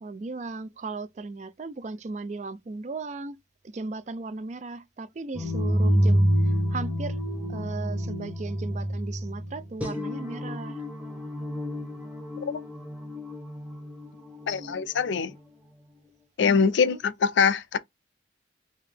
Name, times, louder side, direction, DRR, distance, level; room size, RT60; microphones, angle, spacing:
voice 1, 0.0-7.2 7.5-10.8 14.5-14.9 16.8-17.0, right 3 dB, 40° right, 0.3 m, -37 dB
sound 1, 5.3-15.3, equal, 5° right, 0.9 m, -28 dB
voice 2, 14.5-15.3 16.4-17.8, left 6 dB, 75° left, 0.4 m, -23 dB
3.6 x 2.8 x 3.4 m
head